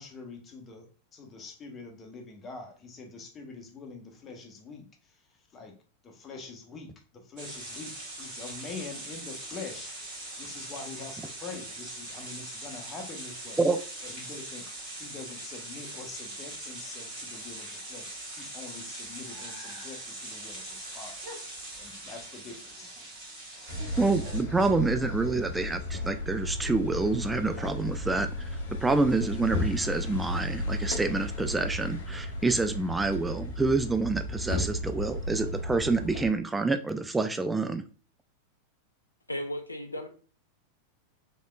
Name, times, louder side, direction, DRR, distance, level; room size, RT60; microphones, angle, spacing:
voice 1, 0.0-5.7 6.0-13.6 14.0-14.7 15.0-21.3 21.8-22.9, left 4 dB, 25° left, 0.9 m, -45 dB
sound 1, 7.4-24.4, right 1 dB, 45° right, 1.8 m, -41 dB
sound 2, 23.7-36.3, left 1 dB, 55° left, 0.8 m, -34 dB
voice 2, 24.0-28.3 28.7-37.8, right 3 dB, 10° right, 0.3 m, -27 dB
voice 3, 39.3-40.1, equal, 85° left, 0.4 m, -35 dB
3.6 x 3.4 x 2.2 m
figure-of-eight pair, 90°, 0 cm